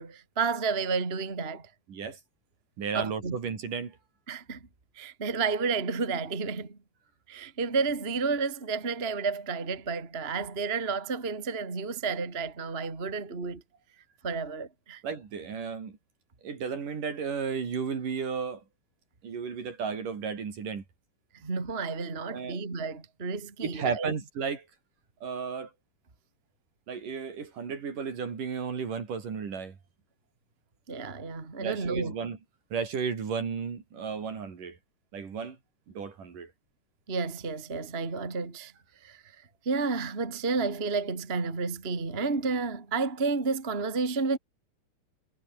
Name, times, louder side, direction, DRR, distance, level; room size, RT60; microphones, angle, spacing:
voice 1, 0.0-1.7 2.9-3.4 4.3-4.6 5.0-6.8 7.3-13.6 14.2-15.0 21.4-24.1 30.9-32.1 37.1-38.7 39.0-39.2 39.6-44.4, right 4 dB, 20° right, 2.3 m, -31 dB
voice 2, 1.9-2.2 2.8-3.9 15.0-16.0 16.4-18.6 19.2-20.8 22.3-22.6 23.6-24.6 25.2-25.7 26.9-29.8 31.6-32.4 32.7-34.8 35.1-35.6 35.9-36.5, right 6 dB, 55° right, 5.1 m, -33 dB
omnidirectional pair, 4.5 m